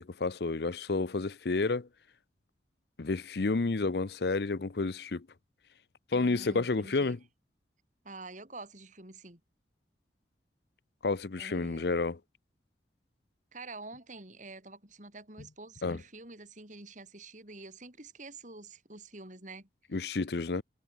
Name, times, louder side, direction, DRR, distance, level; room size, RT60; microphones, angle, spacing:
voice 1, 0.0-1.9 3.0-5.3 6.1-7.2 11.0-12.2 15.8-16.0 19.9-20.6, left 3 dB, 60° left, 0.7 m, -30 dB
voice 2, 6.1-7.2 8.0-9.4 11.4-12.0 13.5-19.7, right 3 dB, 45° right, 5.3 m, -47 dB
head